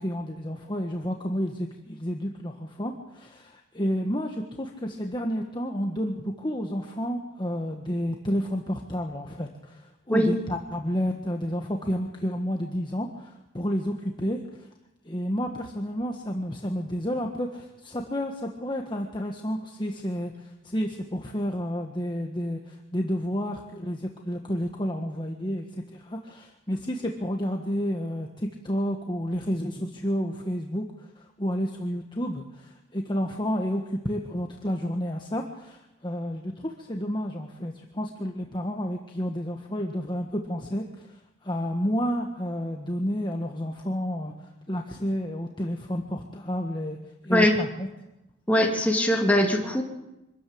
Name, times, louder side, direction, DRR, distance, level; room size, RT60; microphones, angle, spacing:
voice 1, 0.0-14.7 15.0-44.3 44.7-47.0 47.2-47.9, equal, 25° left, 2 dB, 1.5 m, -30 dB
voice 2, 48.5-49.8, left 1 dB, 10° left, 0 dB, 3.0 m, -21 dB
25.0 x 14.0 x 8.6 m, 0.96 s
head